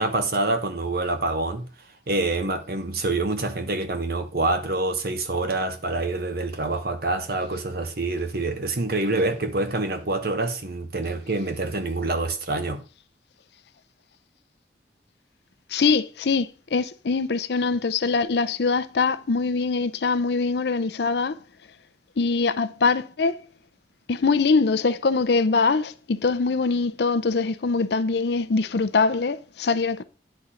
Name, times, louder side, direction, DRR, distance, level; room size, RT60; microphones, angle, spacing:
voice 1, 0.0-1.7 2.1-12.8, right 2 dB, 55° right, 1.1 m, -26 dB
voice 2, 15.7-21.4 22.2-23.4 24.1-30.0, left 4 dB, 60° left, 0.5 m, -23 dB
9.5 x 4.3 x 5.0 m
head